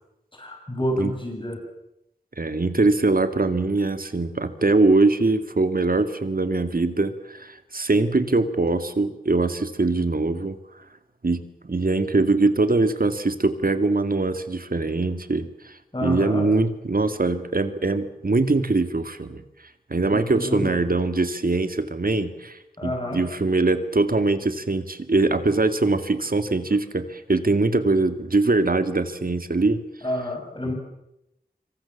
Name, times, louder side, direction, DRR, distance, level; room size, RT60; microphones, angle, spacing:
voice 1, 0.3-1.7 15.9-16.5 20.1-20.9 22.8-23.2 30.0-30.7, left 1 dB, 30° left, 2 dB, 7.1 m, -29 dB
voice 2, 2.4-10.6 11.2-19.4 19.9-29.8, right 3 dB, 65° right, 9 dB, 2.3 m, -22 dB
26.5 x 24.0 x 7.4 m, 0.87 s
wide cardioid pair, 60°, 16 cm